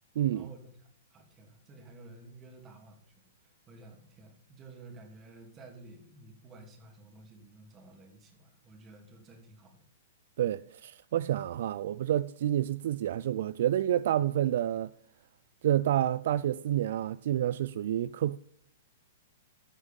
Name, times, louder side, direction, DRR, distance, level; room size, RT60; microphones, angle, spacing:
voice 1, 0.2-0.5 10.4-14.9 15.6-18.4, right 11 dB, 65° right, 0.3 m, -29 dB
voice 2, 1.1-3.0 3.7-9.9, right 2 dB, 25° right, 2.8 m, -52 dB
13.5 x 6.2 x 5.4 m
hypercardioid pair, 125°, 0 cm